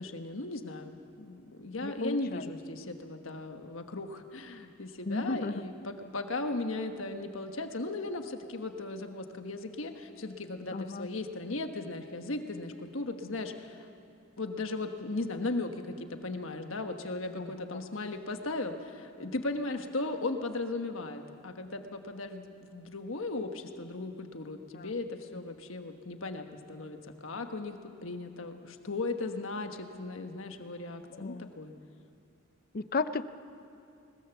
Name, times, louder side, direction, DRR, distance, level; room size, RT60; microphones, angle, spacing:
voice 1, 0.0-13.9 14.4-31.7, left 2 dB, 75° left, 6 dB, 1.4 m, -37 dB
voice 2, 1.8-2.5 5.1-5.6 10.7-11.1 17.4-17.8 24.7-24.9 31.2-31.5 32.7-33.2, left 3 dB, 45° left, 12 dB, 0.6 m, -34 dB
20.5 x 20.5 x 7.2 m, 2.6 s
head